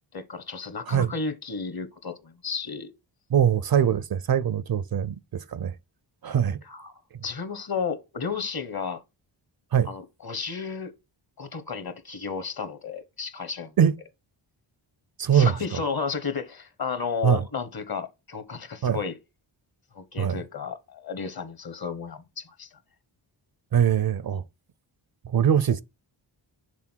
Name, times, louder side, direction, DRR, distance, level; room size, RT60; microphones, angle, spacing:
voice 1, 0.1-2.9 6.6-9.0 9.8-10.9 11.4-13.7 15.3-19.2 19.9-22.8, left 5 dB, 45° left, 1.1 m, -33 dB
voice 2, 3.3-5.7 6.2-6.6 9.7-9.9 13.8-13.9 15.2-15.5 17.2-17.4 18.8-19.0 20.2-20.4 23.7-24.4 25.3-25.8, right 8 dB, 50° right, 0.5 m, -22 dB
6.2 x 3.5 x 4.4 m
cardioid pair, 55°, 49 cm